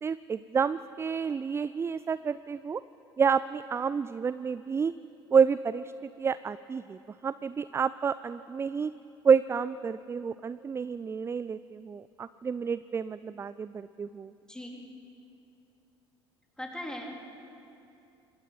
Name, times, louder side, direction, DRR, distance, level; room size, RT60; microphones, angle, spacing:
voice 1, 0.0-2.8 3.2-4.9 5.3-8.9 9.2-14.3, right 6 dB, 20° right, 16 dB, 0.4 m, -29 dB
voice 2, 14.4-14.9 16.6-17.1, left 1 dB, 5° left, 0 dB, 3.7 m, -39 dB
26.5 x 20.5 x 5.8 m, 2.7 s
figure-of-eight pair, 65°, 14 cm